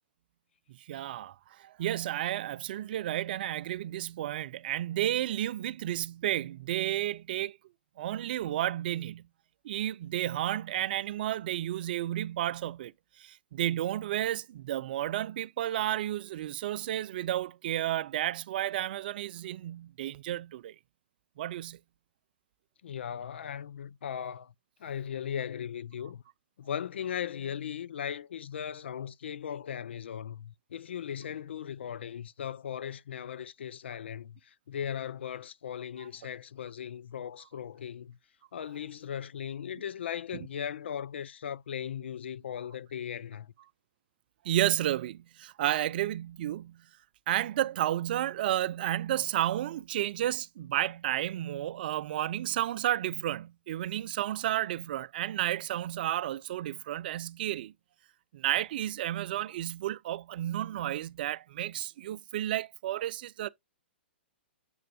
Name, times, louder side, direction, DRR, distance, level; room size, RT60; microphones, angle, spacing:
voice 1, 0.7-7.6 8.0-9.3 9.6-12.9 13.2-20.8 21.4-21.8 44.4-46.9 47.3-57.7 58.3-63.5, right 13 dB, 55° right, 0.5 m, -32 dB
voice 2, 22.8-24.5 24.8-26.2 26.6-38.2 38.5-43.5, left 9 dB, 75° left, 0.4 m, -38 dB
7.1 x 6.6 x 2.3 m
hypercardioid pair, 130°, 6 cm